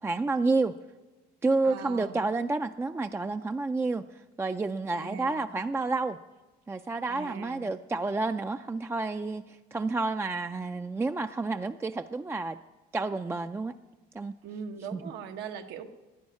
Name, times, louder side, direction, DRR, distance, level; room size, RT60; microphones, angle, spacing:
voice 1, 0.0-0.8 1.4-6.2 6.7-12.6 12.9-13.7 14.1-14.4 14.9-15.0, right 3 dB, 15° right, 8 dB, 0.3 m, -30 dB
voice 2, 1.6-2.2 4.9-5.5 7.1-7.7 14.4-15.9, right 6 dB, 85° right, 6 dB, 1.1 m, -40 dB
11.0 x 10.5 x 9.6 m, 1.2 s
cardioid pair, 110°, 17 cm